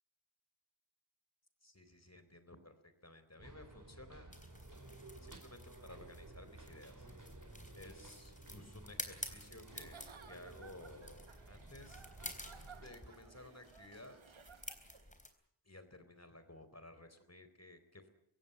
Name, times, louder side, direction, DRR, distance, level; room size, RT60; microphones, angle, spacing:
voice 1, 1.6-4.3 5.2-7.1 7.8-10.0 10.3-12.0 12.8-14.2 15.6-18.1, left 2 dB, 35° left, 10 dB, 3.9 m, -56 dB
sound 1, 3.4-12.9, right 2 dB, 40° right, 3.5 m, -55 dB
sound 2, 4.3-15.3, left 1 dB, 15° left, 3.8 m, -51 dB
Giggle / Chuckle chortle, 9.6-15.1, right 6 dB, 85° right, 1.3 m, -59 dB
24.5 x 16.5 x 9.2 m, 0.78 s
wide cardioid pair, 45°, 46 cm